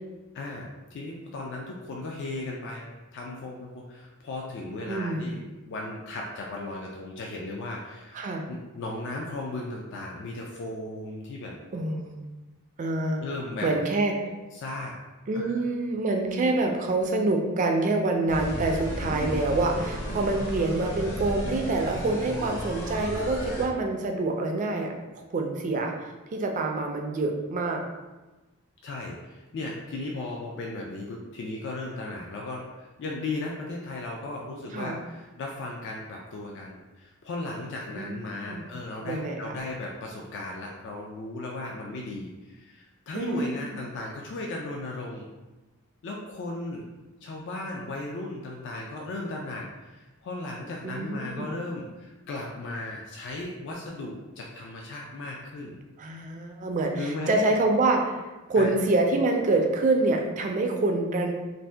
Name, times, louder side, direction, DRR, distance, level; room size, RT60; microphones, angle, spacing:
voice 1, 0.3-8.2 8.5-11.5 13.2-13.7 14.2-14.9 15.3-15.6 28.8-45.3 46.0-46.8 47.2-55.7 57.0-57.4 58.6-58.7, left 2 dB, 55° left, -1 dB, 0.3 m, -36 dB
voice 2, 4.9-5.3 8.1-8.4 11.7-12.2 12.8-13.2 13.6-14.1 15.3-27.8 34.7-35.0 38.0-38.6 39.0-39.6 43.1-43.8 50.8-51.5 56.0-58.2 58.5-61.3, right 2 dB, 35° right, 2 dB, 0.3 m, -26 dB
sound 1, 18.3-23.7, equal, 75° left, 1.0 m, -33 dB
2.6 x 2.1 x 3.3 m, 1.1 s
head